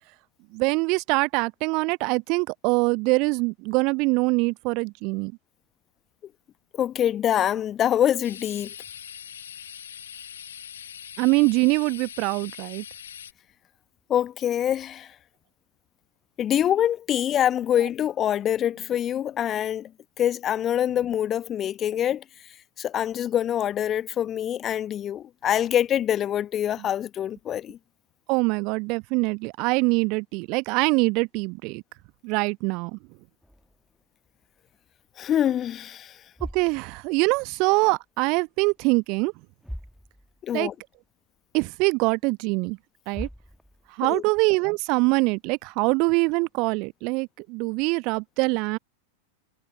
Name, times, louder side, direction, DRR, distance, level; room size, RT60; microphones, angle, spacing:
voice 1, 0.5-5.3 11.2-12.8 17.7-17.9 28.3-31.8 32.2-33.0 36.5-39.3 40.5-40.7 41.5-42.8 43.1-43.3 44.0-48.8, right 28 dB, 45° right, 0.9 m, -24 dB
voice 2, 6.7-8.7 14.1-15.1 16.4-19.9 20.2-22.2 22.8-27.8 35.2-36.2 40.4-40.7 44.1-44.2, left 10 dB, 30° left, 1.0 m, -25 dB
sound 1, 8.2-13.3, left 9 dB, 65° left, 1.0 m, -42 dB
sound 2, 33.4-35.1 35.4-35.7 36.1-38.0 38.3-39.0 39.2-39.3 39.6-40.6 40.9-41.0 41.7-41.8 42.7-42.8 43.1-44.1, equal, ahead, 2.0 m, -43 dB
figure-of-eight pair, 90°, 0 cm